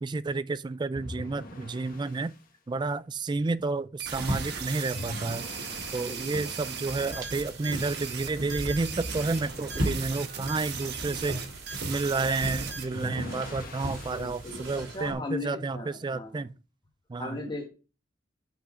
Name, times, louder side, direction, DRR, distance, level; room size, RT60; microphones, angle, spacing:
voice 1, 0.0-2.3 2.7-5.4 5.9-11.4 11.9-16.5 17.1-17.4, right 3 dB, 25° right, 0.3 m, -31 dB
sound 1, 0.9-2.4 4.9-6.4 8.9-10.3 12.9-14.5, equal, 45° left, 1.4 m, -41 dB
sound 2, 4.0-12.8, right 6 dB, 55° right, 1.3 m, -38 dB
sound 3, 4.1-15.1, right 1 dB, 75° right, 3.0 m, -38 dB
voice 2, 6.0-6.5 14.1-16.3 17.2-17.7, left 2 dB, 25° left, 1.7 m, -38 dB
6.0 x 5.7 x 6.3 m
head